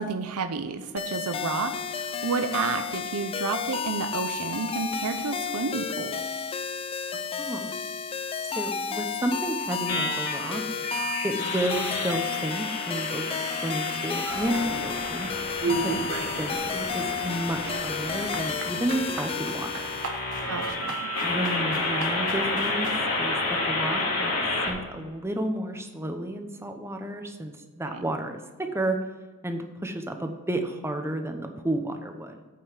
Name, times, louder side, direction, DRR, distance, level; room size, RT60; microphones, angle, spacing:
voice 1, 0.0-6.2 15.7-16.1 20.5-21.1 27.9-28.1, right 4 dB, 75° right, 8 dB, 0.7 m, -31 dB
sound 1, 1.0-20.1, left 6 dB, 25° left, 0.3 m, -32 dB
voice 2, 7.4-7.7 8.4-10.6 11.2-15.3 15.7-19.8 21.2-22.9 23.2-24.4 24.7-29.0 29.4-32.4, right 1 dB, 10° right, 5 dB, 0.9 m, -31 dB
sound 2, 9.9-24.7, left 2 dB, 75° left, 3.0 m, -31 dB
sound 3, 14.3-15.2 15.6-16.5 16.8-23.0, right 3 dB, 60° right, 1.4 m, -35 dB
8.7 x 5.6 x 6.5 m, 1.3 s
head